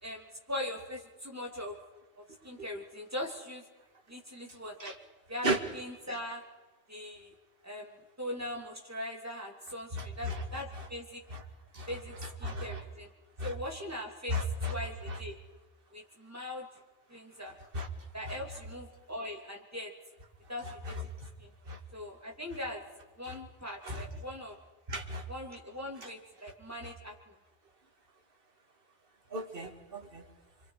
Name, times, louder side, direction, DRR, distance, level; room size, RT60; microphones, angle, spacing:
voice 1, 0.0-1.7 2.2-3.6 4.1-4.9 5.3-6.4 6.9-7.4 7.6-11.2 11.9-13.1 13.4-15.4 15.9-16.8 17.1-17.5 18.1-19.9 20.5-21.0 21.4-21.5 21.9-22.8 23.2-24.6 25.3-27.3, left 1 dB, 15° right, -1 dB, 3.0 m, -41 dB
voice 2, 14.3-14.7 17.7-17.9 21.7-21.8 23.9-24.0 24.9-25.2 29.3-30.2, right 1 dB, 55° right, 2 dB, 2.3 m, -33 dB
27.5 x 25.0 x 4.9 m, 1.2 s
omnidirectional pair, 1.1 m